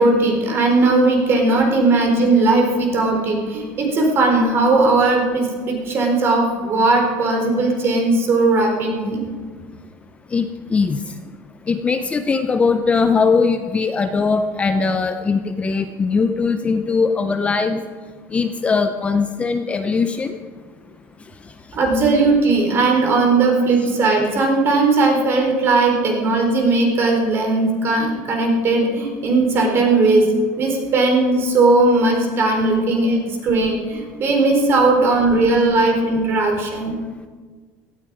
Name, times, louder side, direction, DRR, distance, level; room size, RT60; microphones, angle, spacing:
voice 1, 0.0-9.2 21.7-30.3 30.6-36.9, right 3 dB, 40° right, 2 dB, 4.0 m, -17 dB
voice 2, 10.3-11.0 11.7-17.8 18.3-20.4, left 4 dB, 20° left, 8 dB, 0.7 m, -20 dB
17.0 x 14.0 x 4.8 m, 1.5 s
cardioid pair, 140°, 7 cm